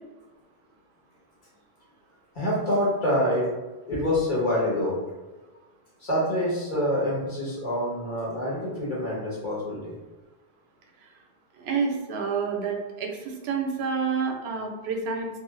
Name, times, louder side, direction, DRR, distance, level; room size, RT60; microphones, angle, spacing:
voice 1, 2.3-3.5 3.9-5.0 6.0-9.9, left 1 dB, 50° left, -6 dB, 1.2 m, -26 dB
voice 2, 11.5-15.4, right 5 dB, 80° right, 2 dB, 0.8 m, -29 dB
2.6 x 2.3 x 3.1 m, 1.2 s
omnidirectional pair, 1.1 m